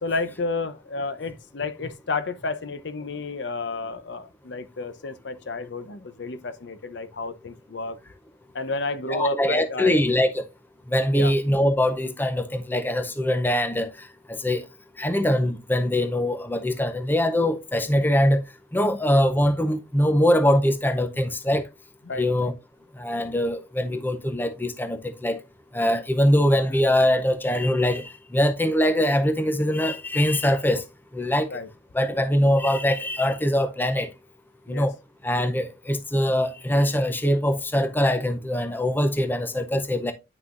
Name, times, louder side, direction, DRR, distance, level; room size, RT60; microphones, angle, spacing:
voice 1, 0.0-8.0 8.5-10.0 11.1-11.3 22.0-22.5 31.5-31.7 34.7-34.9, left 3 dB, 65° left, 0.7 m, -31 dB
voice 2, 9.1-10.3 10.9-13.9 14.3-14.6 15.0-18.4 18.7-21.7 22.2-22.5 23.0-25.4 25.7-30.8 31.1-31.5 31.9-34.1 34.7-34.9 35.2-40.1, left 1 dB, 10° left, 0.5 m, -22 dB
9.6 x 5.9 x 2.5 m
head